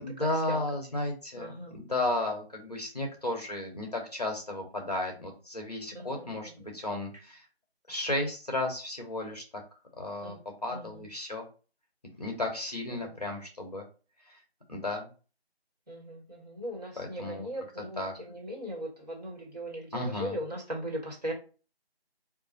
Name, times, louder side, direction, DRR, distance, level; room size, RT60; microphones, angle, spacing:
voice 1, 0.0-7.4 7.9-9.6 10.0-11.5 12.2-13.8 14.3-14.4 14.7-15.1 17.0-17.5 18.0-18.1 19.9-20.4, left 2 dB, 40° left, 1 dB, 0.8 m, -34 dB
voice 2, 1.3-1.8 5.9-6.5 10.2-10.4 10.7-11.0 12.9-13.2 15.9-21.3, equal, 40° right, -2 dB, 1.5 m, -39 dB
4.5 x 2.5 x 3.9 m, 0.36 s
figure-of-eight pair, 170°, 32 cm